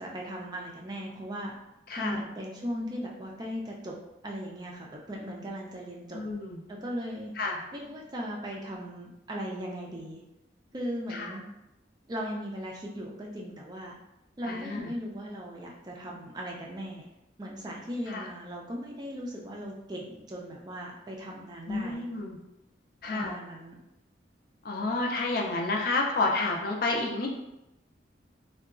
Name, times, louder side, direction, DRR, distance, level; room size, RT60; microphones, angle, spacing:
voice 1, 0.0-1.5 2.0-3.9 4.2-6.2 6.7-7.3 7.7-10.2 10.7-11.5 12.1-14.0 14.4-17.1 17.4-22.0 23.1-23.8, equal, 20° right, -2 dB, 0.4 m, -38 dB
voice 2, 1.9-2.2 6.1-6.6 7.4-7.6 11.1-11.3 14.4-14.9 18.1-18.2 21.7-22.4 23.0-23.3 24.6-27.3, left 3 dB, 50° left, 0 dB, 0.4 m, -30 dB
3.7 x 2.2 x 2.4 m, 0.89 s
head